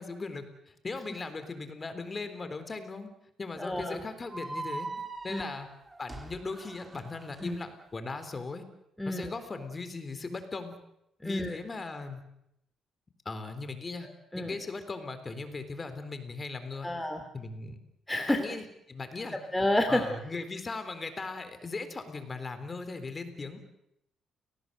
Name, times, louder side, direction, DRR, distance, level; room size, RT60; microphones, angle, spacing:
voice 1, 0.0-3.1 3.4-4.9 5.2-5.7 6.0-8.6 9.1-10.8 11.2-12.2 13.3-14.1 14.4-16.9 17.3-17.8 18.4-19.4 19.9-23.6, left 3 dB, 30° left, 10 dB, 3.9 m, -38 dB
voice 2, 3.6-4.0 5.3-5.4 7.4-7.6 9.0-9.3 11.2-11.6 14.3-14.5 16.8-17.2 18.1-18.4 19.5-20.0, left 1 dB, 5° left, 5 dB, 2.8 m, -29 dB
sound 1, 4.3-7.5, right 3 dB, 20° right, 3.3 m, -41 dB
29.5 x 18.5 x 8.0 m, 0.81 s
cardioid pair, 90°, 0 cm